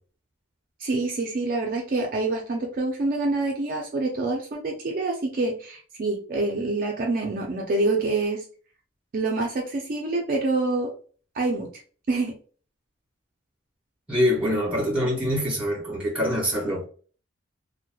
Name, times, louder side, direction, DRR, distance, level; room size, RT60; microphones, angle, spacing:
voice 1, 0.8-8.4 9.1-10.9 11.3-11.7 12.1-12.3, right 2 dB, 45° right, 0.4 m, -26 dB
voice 2, 14.1-16.8, equal, 5° right, 1.3 m, -24 dB
2.9 x 2.1 x 2.2 m
head